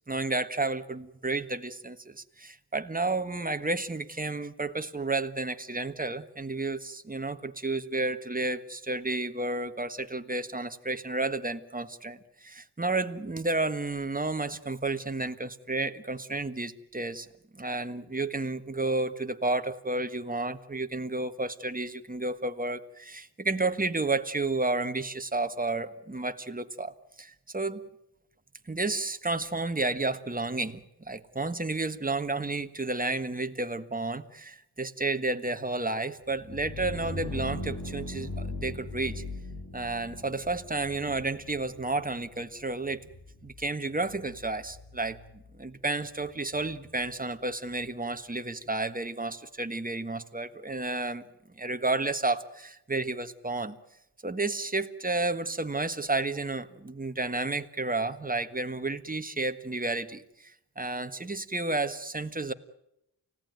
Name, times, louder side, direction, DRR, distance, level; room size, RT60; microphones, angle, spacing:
voice 1, 0.1-17.3 17.5-26.9 27.2-27.8 28.7-39.2 39.7-43.1 43.4-45.2 45.6-51.2 51.6-53.8 54.2-62.5, right 2 dB, 20° right, 9 dB, 1.5 m, -31 dB
sound 1, 36.3-47.9, left 2 dB, 65° left, 7.7 m, -41 dB
29.5 x 17.0 x 9.2 m, 0.82 s
wide cardioid pair, 85°, 38 cm